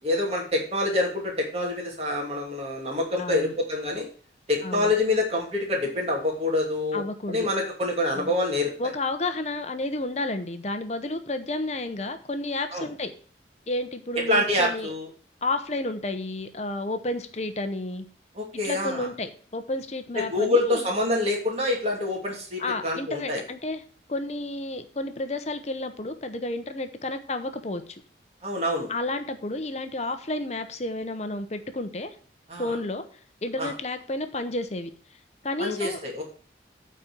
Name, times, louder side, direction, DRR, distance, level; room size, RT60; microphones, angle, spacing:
voice 1, 0.0-4.1 4.5-8.9 12.7-12.9 14.1-15.1 18.3-19.1 20.1-23.4 28.4-28.9 32.5-32.8 33.6-33.7 35.6-36.2, left 2 dB, 35° right, -1 dB, 2.6 m, -26 dB
voice 2, 3.2-3.5 4.6-4.9 6.9-7.5 8.2-8.3 8.8-13.1 13.7-14.9 15.4-18.0 18.5-20.9 22.6-23.8 24.1-27.8 28.9-32.1 32.5-33.0 33.4-34.9 35.4-36.2, left 2 dB, 35° left, 8 dB, 0.8 m, -31 dB
8.8 x 4.3 x 7.0 m, 0.43 s
head